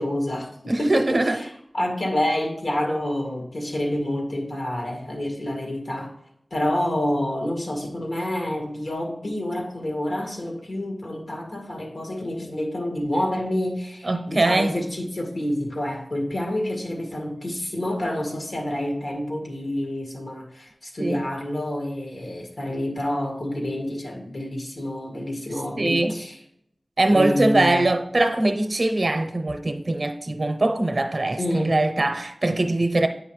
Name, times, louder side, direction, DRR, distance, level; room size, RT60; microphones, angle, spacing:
voice 1, 0.0-6.1 6.5-26.4 27.1-27.9 31.4-31.8, left 1 dB, 70° left, 1.9 m, -28 dB
voice 2, 0.7-1.4 14.0-14.7 21.0-21.3 25.8-26.2 27.0-33.1, right 2 dB, 55° right, 0.7 m, -22 dB
8.8 x 5.2 x 3.2 m
wide cardioid pair, 65°, 0 cm